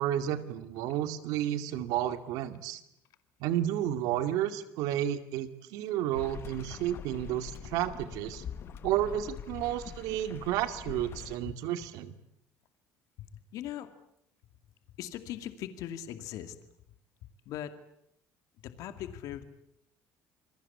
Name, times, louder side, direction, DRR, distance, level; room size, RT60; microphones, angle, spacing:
voice 1, 0.0-2.8 3.4-8.4 8.8-12.1, right 12 dB, 85° right, 10 dB, 2.3 m, -31 dB
sound 1, 6.1-11.4, left 8 dB, 45° left, 1.6 m, -44 dB
voice 2, 13.2-13.9 15.0-16.6 17.5-17.7 18.6-19.4, left 11 dB, 70° left, 9 dB, 2.4 m, -40 dB
27.5 x 22.0 x 8.6 m, 0.75 s
cardioid pair, 140°, 6 cm